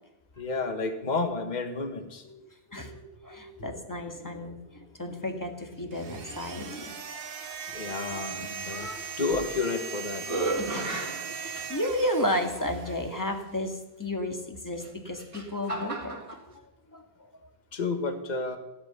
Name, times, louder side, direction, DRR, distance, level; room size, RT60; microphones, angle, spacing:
voice 1, 0.4-2.2 7.7-8.9 9.2-10.2 11.3-11.4 17.7-18.6, left 3 dB, 45° left, 7 dB, 1.6 m, -31 dB
voice 2, 2.2-7.1 8.7-9.0 10.5-11.0 11.3-16.3 16.9-17.1, left 1 dB, 20° left, 4 dB, 1.9 m, -33 dB
sound 1, 5.9-13.3, right 6 dB, 60° right, 1.2 m, -39 dB
sound 2, 9.4-9.9 10.2-12.1 12.9-13.0 14.7-16.4, right 2 dB, 30° right, 1.9 m, -34 dB
15.5 x 12.0 x 6.9 m, 0.97 s
omnidirectional pair, 1.1 m